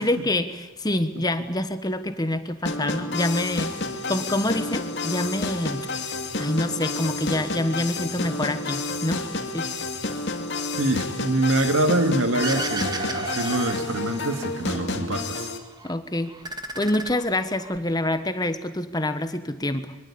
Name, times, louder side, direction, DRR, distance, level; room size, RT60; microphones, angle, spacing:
voice 1, 0.0-3.7 4.1-5.9 6.4-9.3 9.5-9.7 15.8-16.3 16.8-19.9, left 1 dB, 20° left, 10 dB, 1.3 m, -26 dB
sound 1, 2.6-15.6, left 3 dB, 55° left, 2.7 m, -30 dB
voice 2, 10.8-15.5, right 1 dB, 80° right, 7 dB, 2.2 m, -24 dB
sound 2, 12.4-14.8 15.1-15.9 16.3-17.8, right 2 dB, 20° right, 1.9 m, -33 dB
25.5 x 23.5 x 8.6 m, 1.0 s
head